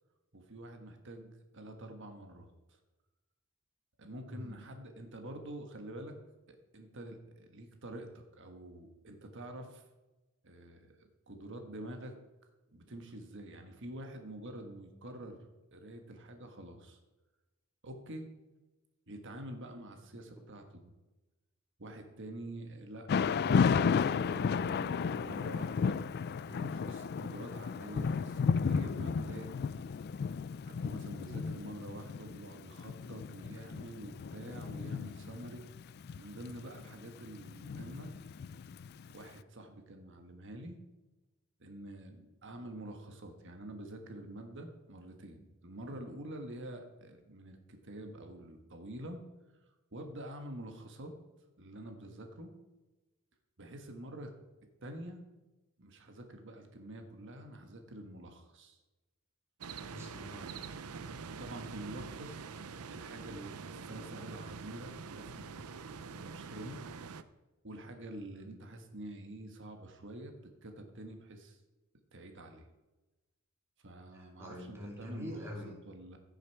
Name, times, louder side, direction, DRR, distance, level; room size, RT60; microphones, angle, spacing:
voice 1, 0.3-2.8 4.0-6.1 6.5-9.8 10.4-12.1 12.7-17.0 17.8-18.3 19.1-20.9 21.8-26.0 26.5-29.7 30.6-35.6 36.2-38.1 39.1-40.8 41.6-49.2 49.9-51.1 51.6-52.5 53.6-54.3 54.8-55.2 55.8-58.8 61.2-62.4 62.9-65.6 66.1-66.8 67.6-70.3 70.6-71.6 72.1-72.7 73.8-75.4 75.8-76.2, right 1 dB, 55° right, 5 dB, 1.4 m, -47 dB
Thunder / Rain, 23.1-39.1, left 6 dB, 50° left, 0.3 m, -33 dB
voice 2, 31.3-31.6 59.9-60.6 68.4-68.5 74.1-75.7, left 1 dB, 10° right, -2 dB, 2.8 m, -45 dB
sound 1, 59.6-67.2, right 5 dB, 85° right, 0.6 m, -45 dB
15.5 x 6.5 x 4.6 m, 1.1 s
head